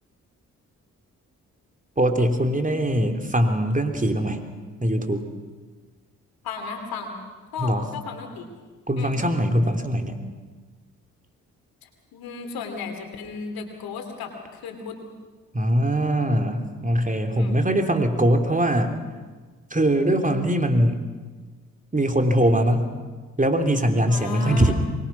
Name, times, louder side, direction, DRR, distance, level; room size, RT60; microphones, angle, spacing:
voice 1, 2.0-4.4 4.8-5.3 7.6-7.8 8.9-10.2 15.5-19.0 19.7-21.0 21.9-22.9 23.4-24.7, right 1 dB, 20° right, 5 dB, 3.4 m, -21 dB
voice 2, 6.4-7.1 7.5-8.5 8.9-9.1 11.8-15.0 16.5-16.6 17.4-17.5 24.1-24.7, left 5 dB, 80° left, 5 dB, 2.8 m, -35 dB
24.0 x 21.0 x 6.1 m, 1.4 s
hypercardioid pair, 45°, 36 cm